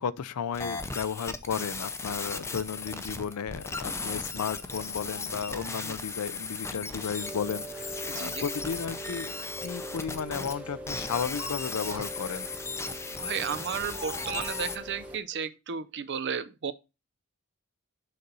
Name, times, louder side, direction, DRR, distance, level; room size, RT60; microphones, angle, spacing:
voice 1, 0.0-12.5, left 7 dB, 85° left, 0.4 m, -34 dB
sound 1, 0.5-10.6 10.9-14.8, left 4 dB, 10° left, 0.5 m, -37 dB
Child speech kid speaking, 4.0-4.1 5.1-5.8 6.7-7.3 7.8-9.0 9.3-9.6 10.0-10.6 11.1-12.5 13.5-15.2, right 1 dB, 25° right, 2.5 m, -46 dB
Rain, 7.2-15.2, right 1 dB, 5° right, 1.0 m, -42 dB
voice 2, 8.1-8.4 13.2-16.7, right 7 dB, 55° right, 0.6 m, -34 dB
6.6 x 4.1 x 5.3 m
head